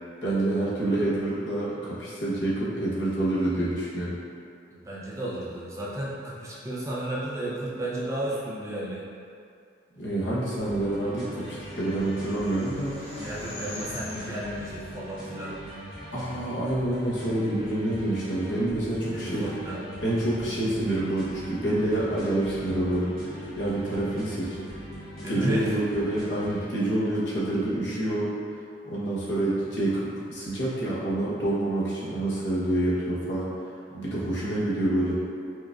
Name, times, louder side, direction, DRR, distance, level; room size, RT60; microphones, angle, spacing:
voice 1, 0.2-4.1 10.0-13.0 16.1-19.4 20.0-24.8 25.3-28.3 28.8-33.5 33.9-35.2, right 1 dB, 80° left, -8 dB, 0.9 m, -27 dB
voice 2, 4.7-9.0 13.2-15.6 19.0-19.8 25.1-25.8, right 1 dB, 15° right, -6 dB, 0.4 m, -33 dB
sound 1, 10.7-26.7, equal, 50° left, 1.2 m, -41 dB
sound 2, 10.9-16.3, left 1 dB, 30° left, 0.5 m, -44 dB
4.5 x 2.4 x 2.3 m, 2.4 s
head